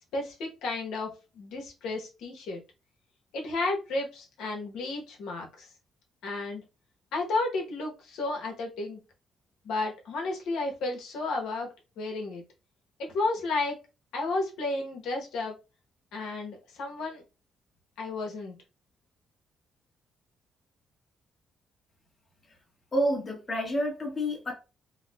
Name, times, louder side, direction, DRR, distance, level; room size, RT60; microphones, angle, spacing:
voice 1, 0.1-2.6 3.3-5.7 6.2-6.6 7.1-9.0 9.6-11.7 12.0-12.4 13.0-13.8 14.1-15.5 16.1-17.2 18.0-18.5, left 2 dB, 85° left, 0.9 m, -32 dB
voice 2, 22.9-24.5, equal, 35° left, 0.9 m, -29 dB
4.6 x 2.0 x 2.2 m
cardioid pair, 90°, 0 cm